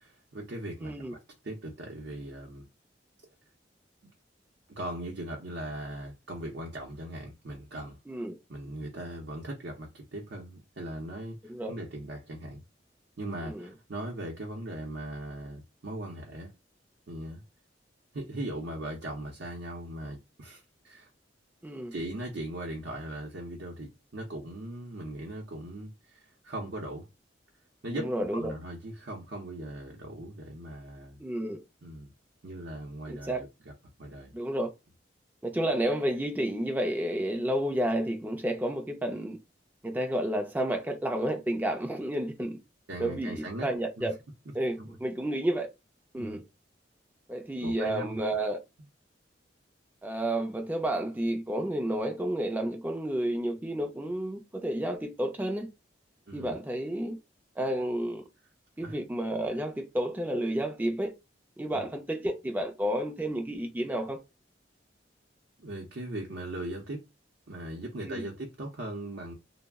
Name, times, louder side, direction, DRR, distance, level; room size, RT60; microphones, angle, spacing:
voice 1, 0.0-2.7 4.8-8.0 8.5-12.6 13.2-16.5 17.1-17.4 18.1-21.1 21.9-27.1 27.8-31.2 31.8-32.1 32.4-33.7 34.0-34.4 42.9-43.7 44.0-44.1 44.8-44.9 46.1-46.4 47.6-48.2 56.3-56.5 58.8-59.0 61.7-61.8 65.6-67.0 67.5-69.3, right 1 dB, 65° right, 0.6 m, -39 dB
voice 2, 0.8-1.1 8.1-8.3 11.5-11.7 13.4-13.6 21.6-21.9 27.9-28.4 31.2-31.6 33.1-33.4 34.3-34.7 35.5-39.4 39.8-42.6 43.0-44.1 44.5-45.7 46.1-46.4 47.3-48.6 50.0-55.7 56.3-57.2 57.6-58.2 58.8-61.1 61.6-64.2 68.0-68.2, right 1 dB, 10° right, 0.4 m, -31 dB
2.3 x 2.0 x 3.4 m
head